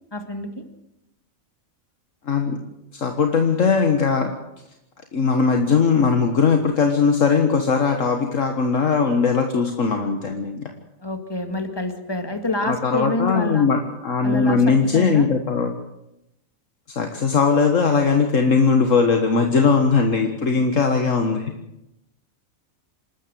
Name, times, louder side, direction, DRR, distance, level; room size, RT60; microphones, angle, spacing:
voice 1, 0.1-0.5 11.0-13.7 14.2-15.3, left 2 dB, 20° left, 6 dB, 2.1 m, -27 dB
voice 2, 2.3-2.6 2.9-4.3 5.1-10.7 12.6-15.7 16.9-21.5, left 5 dB, 70° left, 4 dB, 1.9 m, -19 dB
27.5 x 13.0 x 7.8 m, 0.87 s
omnidirectional pair, 1.4 m